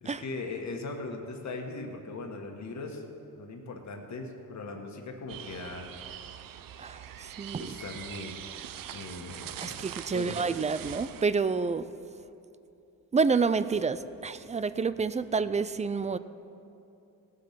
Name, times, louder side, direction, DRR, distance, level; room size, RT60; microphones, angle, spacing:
voice 1, 0.0-3.0 3.4-5.9 7.6-8.4 8.9-9.8 10.1-10.4, left 3 dB, 50° left, 2 dB, 1.6 m, -39 dB
sound 1, 5.3-11.2, right 10 dB, 70° right, 0.6 m, -43 dB
voice 2, 6.8-7.7 9.6-11.8 13.1-16.2, right 4 dB, 20° right, 14 dB, 0.3 m, -29 dB
18.0 x 7.6 x 5.8 m, 2.7 s
cardioid pair, 100°, 35 cm